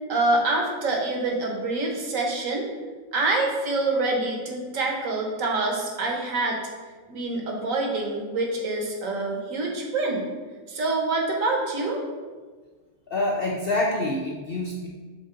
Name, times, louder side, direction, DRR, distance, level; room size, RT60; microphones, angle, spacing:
voice 1, 0.1-2.7 3.1-6.6 7.1-10.2 10.7-12.0, right 2 dB, 55° right, 0 dB, 1.3 m, -26 dB
voice 2, 13.1-14.9, left 2 dB, 75° left, -2 dB, 0.5 m, -26 dB
6.7 x 3.8 x 3.8 m, 1.4 s
omnidirectional pair, 1.8 m